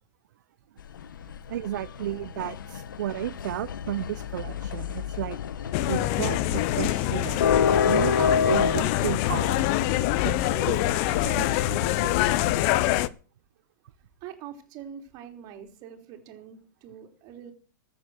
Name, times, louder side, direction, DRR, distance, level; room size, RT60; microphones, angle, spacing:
sound 1, 0.8-12.8, left 6 dB, 85° left, 1.2 m, -30 dB
voice 1, 1.5-7.5 7.8-9.6 10.2-10.7 11.2-11.9, right 13 dB, 65° right, 0.7 m, -33 dB
sound 2, 5.7-13.1, left 15 dB, 40° left, 0.7 m, -25 dB
voice 2, 14.2-17.5, right 10 dB, 35° right, 3.6 m, -42 dB
14.0 x 8.1 x 6.6 m
hypercardioid pair, 140°, 11 cm